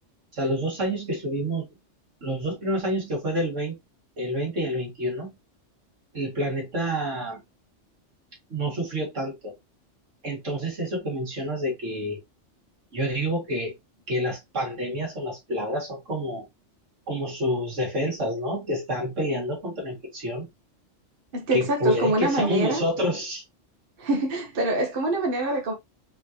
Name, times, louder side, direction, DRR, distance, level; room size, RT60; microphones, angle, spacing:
voice 1, 0.3-1.7 2.2-3.8 4.2-5.3 6.1-7.4 8.5-9.5 10.2-12.2 12.9-13.7 14.1-16.4 17.1-20.5 21.5-23.4, equal, 75° right, 2.3 m, -28 dB
voice 2, 21.3-22.8 24.0-25.7, right 2 dB, 50° right, 1.2 m, -25 dB
4.3 x 3.8 x 2.8 m
omnidirectional pair, 1.3 m